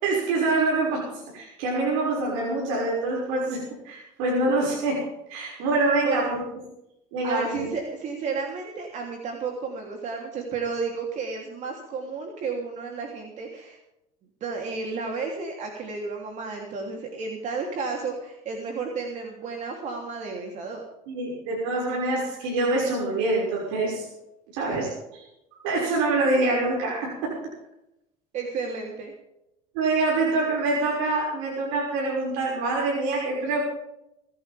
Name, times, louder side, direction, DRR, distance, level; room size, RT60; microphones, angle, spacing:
voice 1, 0.0-6.4 7.1-7.6 21.1-24.1 24.5-24.9 25.6-27.4 29.7-33.6, right 2 dB, 90° right, -3 dB, 6.0 m, -25 dB
voice 2, 7.2-13.8 14.4-20.8 24.7-24.9 28.3-29.1, right 4 dB, 50° right, 1 dB, 3.3 m, -32 dB
25.5 x 11.5 x 3.6 m, 0.85 s
cardioid pair, 125°, 16 cm